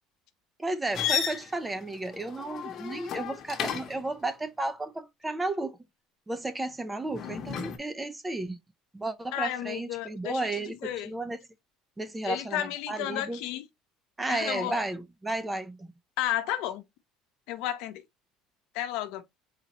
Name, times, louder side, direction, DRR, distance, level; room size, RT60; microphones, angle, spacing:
voice 1, 0.6-5.8 6.3-8.6 8.9-11.4 12.0-13.4 14.2-15.9, right 2 dB, 10° right, 0.6 m, -33 dB
sound 1, 0.9-4.1 7.1-7.8, left 8 dB, 45° left, 1.0 m, -33 dB
voice 2, 9.3-11.1 12.2-13.7 14.3-14.8 16.2-16.8 17.5-18.0 18.7-19.2, left 12 dB, 75° left, 0.8 m, -32 dB
4.2 x 4.1 x 2.9 m
cardioid pair, 120°, 0 cm